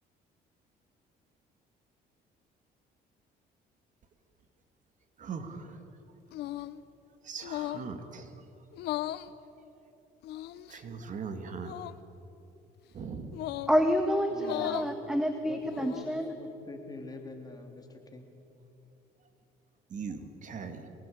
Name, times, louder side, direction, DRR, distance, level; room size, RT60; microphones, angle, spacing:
voice 1, 5.2-5.9 7.2-8.4 10.4-11.8 12.9-13.3 19.9-20.9, right 5 dB, 50° right, 7 dB, 2.3 m, -40 dB
sound 1, 6.3-6.8 7.4-7.9 8.7-9.3 10.2-10.8 11.6-12.0 13.3-13.8 14.4-14.9 15.6-16.2, left 14 dB, 80° left, 0.9 m, -36 dB
voice 2, 13.7-16.3, equal, 5° right, 6 dB, 1.6 m, -28 dB
voice 3, 14.3-14.9 15.5-15.9 16.4-18.3, left 3 dB, 20° left, 3 dB, 3.6 m, -45 dB
24.5 x 19.5 x 8.7 m, 3.0 s
cardioid pair, 110°, 17 cm